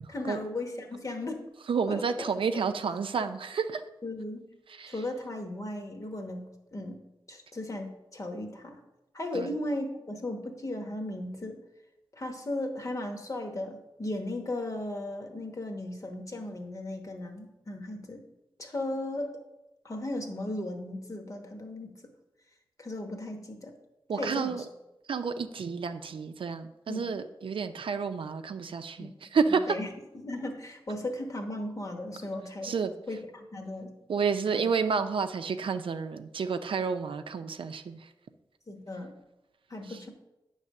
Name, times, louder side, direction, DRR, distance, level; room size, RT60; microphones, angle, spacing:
voice 1, 0.1-1.4 1.9-2.3 4.0-4.5 4.9-7.0 7.3-8.8 9.1-11.6 12.1-18.2 18.6-19.3 19.8-22.0 22.8-23.7 24.2-24.6 26.9-27.0 29.0-29.1 29.7-29.9 30.1-32.7 33.1-33.9 34.5-34.7 38.7-39.1 39.7-40.1, left 1 dB, 40° left, 3 dB, 1.1 m, -36 dB
voice 2, 1.7-3.8 4.7-4.9 9.3-9.5 24.1-24.6 25.1-29.8 32.6-32.9 34.1-38.1 39.9-40.0, right 5 dB, 80° right, 8 dB, 0.5 m, -30 dB
9.3 x 3.3 x 6.5 m, 0.97 s
wide cardioid pair, 90°, 9 cm